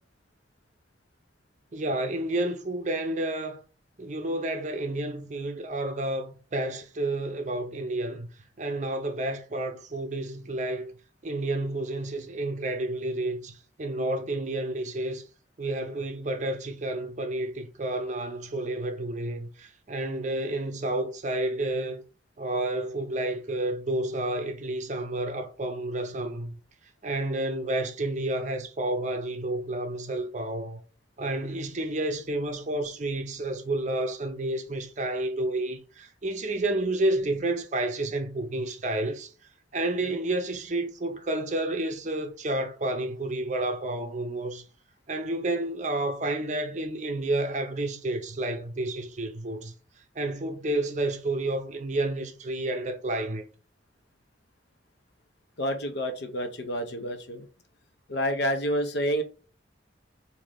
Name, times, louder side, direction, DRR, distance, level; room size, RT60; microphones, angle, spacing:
voice 1, 1.7-3.6 4.0-8.3 8.6-11.0 11.2-15.3 15.6-22.0 22.4-26.6 27.0-30.8 31.2-39.3 39.7-44.6 45.1-49.7 50.1-53.5, right 2 dB, 40° right, 0.6 m, -30 dB
voice 2, 55.6-57.4 58.1-59.2, equal, 60° left, 0.6 m, -29 dB
3.7 x 2.6 x 3.3 m
head